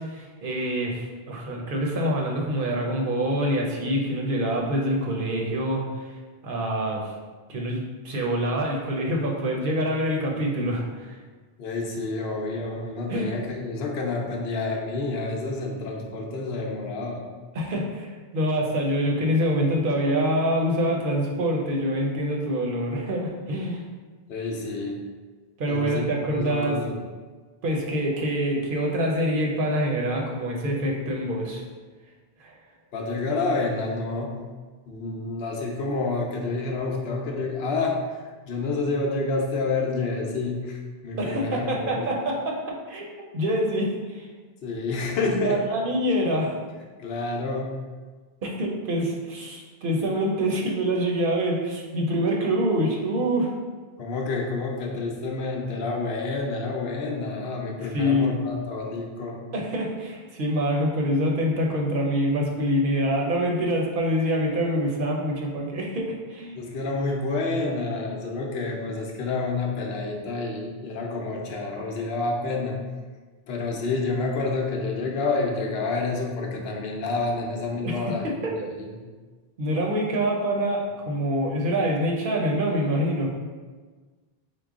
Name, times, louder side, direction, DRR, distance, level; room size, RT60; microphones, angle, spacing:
voice 1, 0.0-6.1 6.4-7.1 7.5-11.2 13.1-13.4 17.5-23.9 25.6-26.8 27.6-31.6 32.4-32.5 41.2-42.6 42.9-43.1 43.3-44.3 45.4-46.5 48.4-53.5 57.9-58.4 59.5-66.6 77.8-78.5 79.6-83.3, equal, 60° right, -1 dB, 0.8 m, -25 dB
voice 2, 11.6-17.2 24.3-25.0 25.7-26.9 32.9-34.3 34.9-38.2 38.5-42.1 44.6-45.6 47.0-47.7 54.0-59.4 66.5-72.8 73.5-79.0, left 3 dB, 75° left, 0 dB, 0.9 m, -29 dB
4.7 x 2.2 x 3.6 m, 1.4 s
omnidirectional pair, 1.0 m